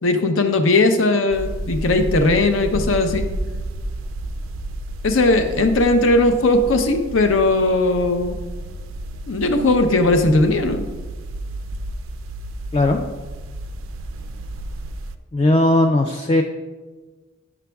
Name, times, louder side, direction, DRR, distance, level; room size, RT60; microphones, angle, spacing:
voice 1, 0.0-3.3 5.0-8.4 9.3-10.8, left 2 dB, 75° left, 7 dB, 0.6 m, -18 dB
sound 1, 1.3-15.2, right 1 dB, 90° right, 0.4 m, -31 dB
voice 2, 15.3-16.4, left 1 dB, 25° left, 4 dB, 0.3 m, -17 dB
9.6 x 6.0 x 2.3 m, 1.3 s
head